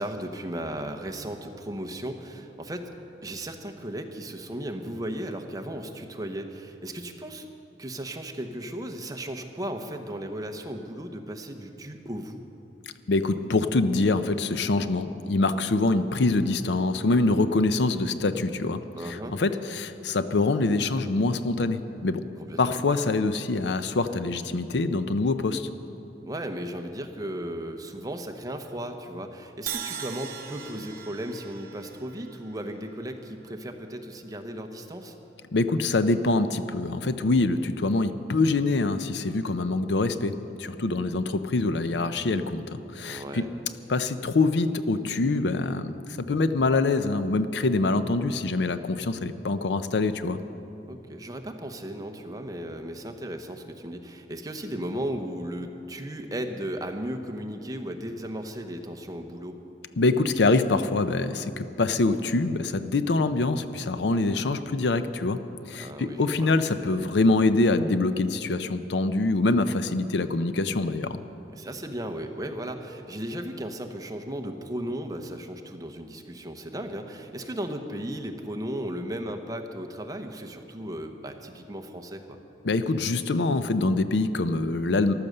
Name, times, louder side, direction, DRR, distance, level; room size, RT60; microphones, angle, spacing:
voice 1, 0.0-2.9 3.2-7.5 7.8-12.4 19.0-19.4 22.4-22.7 26.3-35.2 43.0-43.5 50.9-59.6 65.8-66.5 71.5-82.4, right 1 dB, 20° right, 5 dB, 0.9 m, -35 dB
voice 2, 13.1-18.8 19.3-22.2 22.6-25.7 35.5-43.4 43.9-50.4 60.0-65.4 65.7-71.2 82.6-85.1, left 3 dB, 70° left, 11 dB, 0.6 m, -25 dB
Crash cymbal, 29.7-33.7, right 7 dB, 55° right, 0.9 m, -40 dB
14.0 x 12.0 x 6.6 m, 2.9 s
head